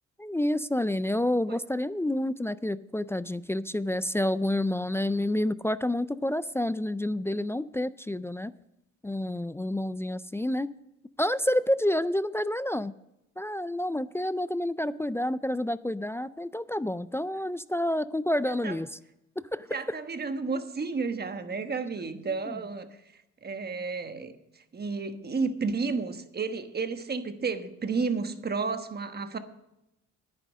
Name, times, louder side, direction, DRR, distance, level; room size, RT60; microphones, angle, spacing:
voice 1, 0.2-8.5 9.0-10.7 11.2-12.9 13.4-18.9 19.5-19.8 22.5-22.6, left 1 dB, 10° left, 15 dB, 0.3 m, -29 dB
voice 2, 18.5-18.8 19.7-23.0 23.4-29.4, right 4 dB, 30° right, 8 dB, 1.3 m, -32 dB
10.5 x 9.4 x 6.2 m, 0.89 s
cardioid pair, 90°, 30 cm